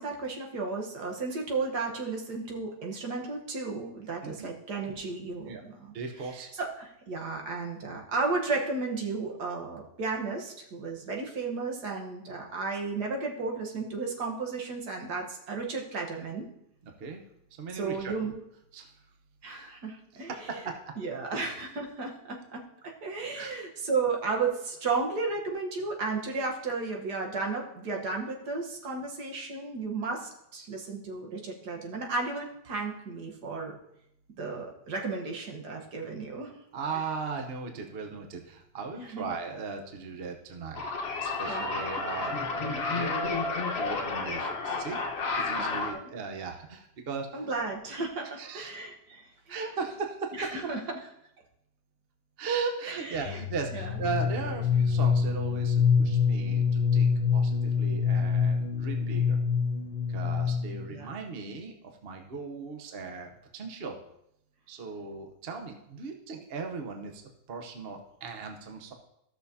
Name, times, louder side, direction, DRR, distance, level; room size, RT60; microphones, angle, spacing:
voice 1, 0.0-5.9 6.2-16.5 17.7-18.4 19.4-20.6 21.0-33.8 34.4-36.5 39.1-39.3 41.5-41.7 42.2-42.3 42.9-43.0 45.6-46.1 47.3-49.6 50.4-50.8 52.8-53.4 53.7-54.0 60.8-61.1, right 4 dB, 65° right, 1 dB, 1.8 m, -34 dB
voice 2, 5.9-6.5 16.8-17.2 17.6-18.1 18.7-18.9 20.2-20.8 23.3-23.5 36.7-40.8 41.2-45.0 45.3-47.5 48.4-48.7 49.5-50.5 52.4-56.6 56.9-59.4 60.1-61.7 62.0-64.0 64.7-67.2 67.5-68.9, right 4 dB, 45° right, 3 dB, 0.9 m, -37 dB
sound 1, 40.7-45.9, left 3 dB, 45° left, 1.0 m, -31 dB
sound 2, 53.3-60.9, left 6 dB, 80° left, 1.4 m, -26 dB
15.0 x 6.3 x 2.7 m, 0.79 s
omnidirectional pair, 1.9 m